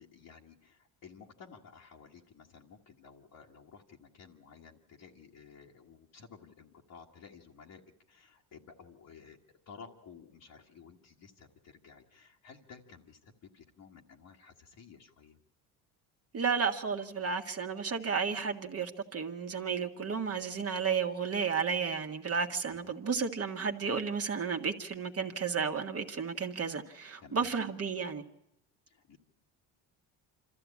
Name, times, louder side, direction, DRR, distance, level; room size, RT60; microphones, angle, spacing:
voice 1, 0.0-7.8 8.1-15.4 22.7-22.9 27.2-27.5 28.9-29.2, left 6 dB, 55° left, 1.7 m, -54 dB
voice 2, 16.3-28.2, right 6 dB, 35° right, 1.5 m, -32 dB
26.0 x 14.0 x 8.5 m
supercardioid pair, 95°, 40 cm